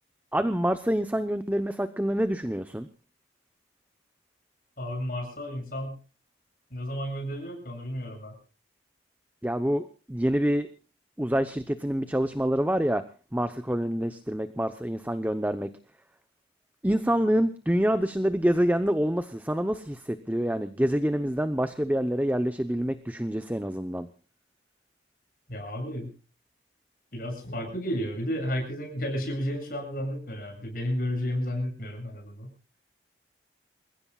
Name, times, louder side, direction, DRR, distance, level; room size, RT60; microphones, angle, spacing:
voice 1, 0.3-2.9 9.4-10.7 11.2-13.0 13.3-15.7 16.8-24.1, equal, 10° right, 10 dB, 0.8 m, -26 dB
voice 2, 4.8-6.0 6.7-8.4 25.5-26.1 27.1-32.5, equal, 50° left, 3 dB, 8.0 m, -32 dB
28.5 x 16.0 x 2.4 m, 0.36 s
head